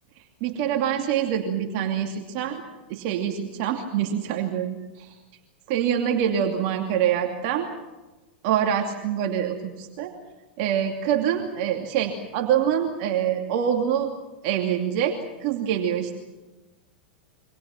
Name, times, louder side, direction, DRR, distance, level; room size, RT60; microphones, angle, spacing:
voice 1, 0.4-2.6 2.9-5.1 5.7-7.7 8.4-10.1 10.6-14.1 14.4-16.2, right 9 dB, 50° right, 3 dB, 2.7 m, -25 dB
28.5 x 25.0 x 6.0 m, 1.1 s
hypercardioid pair, 95°, 6 cm